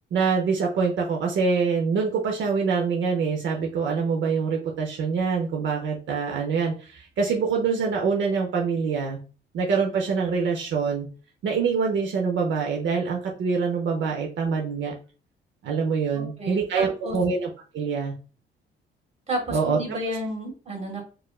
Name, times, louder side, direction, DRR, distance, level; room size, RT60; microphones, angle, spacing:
voice 1, 0.1-9.2 9.5-11.1 11.4-14.9 15.6-17.5 17.7-18.1 19.5-19.8, right 5 dB, 70° right, 0 dB, 0.7 m, -25 dB
voice 2, 16.1-17.2 19.3-21.0, right 1 dB, 30° right, 1 dB, 1.7 m, -31 dB
4.8 x 2.5 x 2.4 m, 0.36 s
cardioid pair, 90°, 20 cm